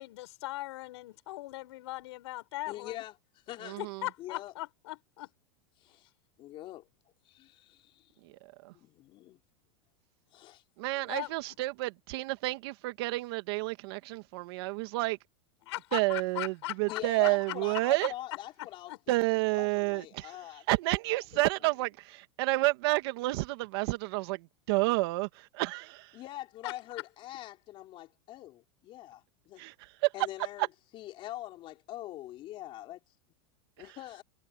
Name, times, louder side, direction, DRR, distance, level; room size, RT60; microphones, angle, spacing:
voice 1, 0.0-3.0 3.8-5.3 11.0-11.3 15.7-17.0 18.9-19.0 26.6-26.7, left 19 dB, 70° left, 6.8 m, -39 dB
voice 2, 2.7-3.1 3.5-3.8 4.2-4.5 5.8-6.1 6.4-6.9 7.2-8.1 8.7-9.4 10.3-10.6 16.9-19.1 19.5-20.6 26.1-29.6 30.1-30.7 30.9-33.0 33.8-34.2, left 15 dB, 35° left, 4.9 m, -44 dB
voice 3, 3.6-4.1 8.2-8.7 10.8-15.2 15.9-18.1 19.1-26.2 29.6-30.1 30.6-30.7 33.8-34.0, right 22 dB, 60° right, 2.2 m, -30 dB
supercardioid pair, 150°, 15 cm